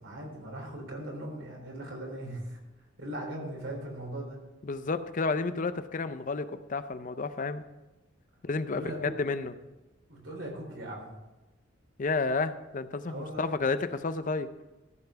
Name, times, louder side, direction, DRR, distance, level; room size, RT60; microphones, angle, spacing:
voice 1, 0.0-2.6 3.0-4.4 8.7-9.1 10.1-11.1 13.1-13.4, right 1 dB, 85° right, 0 dB, 3.6 m, -39 dB
voice 2, 4.6-7.6 8.4-9.5 12.0-14.5, left 3 dB, 45° left, 12 dB, 0.5 m, -31 dB
13.5 x 5.8 x 5.8 m, 1.1 s
head